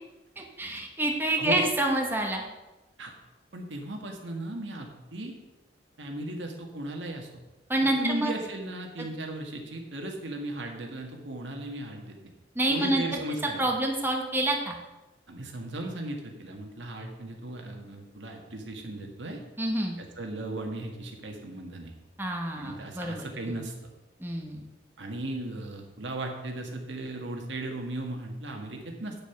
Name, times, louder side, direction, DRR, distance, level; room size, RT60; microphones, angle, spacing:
voice 1, 0.4-2.4 7.7-8.3 9.0-9.1 12.5-13.2 13.6-14.7 19.6-20.0 22.2-23.6 24.2-24.6, right 1 dB, 10° right, 1 dB, 1.3 m, -28 dB
voice 2, 3.5-5.3 6.0-7.3 8.0-12.2 12.7-13.6 15.3-19.4 20.0-21.9 22.5-23.7 25.0-29.2, right 1 dB, 90° right, 2 dB, 1.7 m, -36 dB
9.1 x 7.0 x 5.9 m, 1.1 s
head